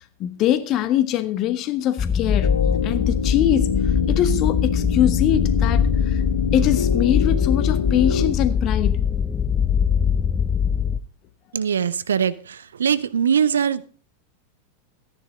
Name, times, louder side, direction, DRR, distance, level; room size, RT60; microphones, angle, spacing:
voice 1, 0.2-2.5 2.8-3.7 4.1-6.2 6.5-9.0, left 11 dB, 35° left, 1.1 m, -23 dB
sound 1, 2.0-11.0, left 7 dB, 20° left, 0.7 m, -22 dB
sound 2, 2.4-8.3, left 6 dB, 70° left, 0.5 m, -26 dB
voice 2, 11.5-13.9, right 7 dB, 70° right, 0.6 m, -22 dB
14.0 x 10.0 x 3.7 m
figure-of-eight pair, 90°, 0 cm